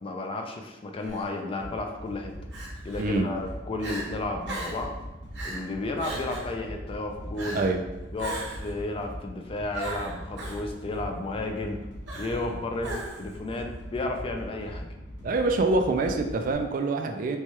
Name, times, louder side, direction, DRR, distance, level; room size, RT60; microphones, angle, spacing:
voice 1, 0.0-2.3 2.8-5.0 5.4-7.6 8.1-11.8 12.2-14.9, left 2 dB, 30° left, 3 dB, 0.4 m, -33 dB
Crying sobbing, 1.0-1.2 2.5-3.0 3.5-3.6 3.8-4.1 4.5-4.8 5.3-5.6 6.0-6.5 7.4-7.7 8.2-8.7 9.7-10.6 12.1-12.5 12.8-13.3, right 2 dB, 70° right, 1.0 m, -37 dB
sound 1, 1.6-16.5, equal, 80° left, 1.0 m, -41 dB
voice 2, 3.0-3.3 7.5-7.8 15.2-17.4, right 3 dB, 50° right, 5 dB, 0.3 m, -25 dB
4.6 x 2.2 x 2.8 m, 1.1 s
head